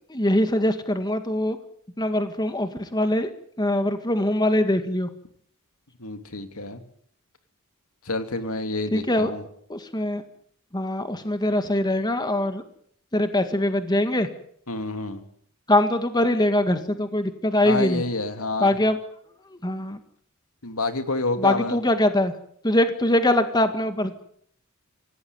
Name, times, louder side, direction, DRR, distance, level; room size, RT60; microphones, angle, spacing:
voice 1, 0.1-1.6 2.0-3.3 3.6-5.1 8.9-9.3 9.7-10.2 10.7-12.6 13.1-14.3 15.7-18.0 18.6-19.0 19.6-20.0 21.4-22.3 22.6-24.1, left 1 dB, 20° left, 8 dB, 1.8 m, -22 dB
voice 2, 6.0-6.8 8.0-9.4 14.7-15.2 17.6-18.8 20.6-21.8, left 2 dB, 75° left, 8 dB, 2.9 m, -28 dB
26.5 x 17.5 x 9.3 m, 0.65 s
head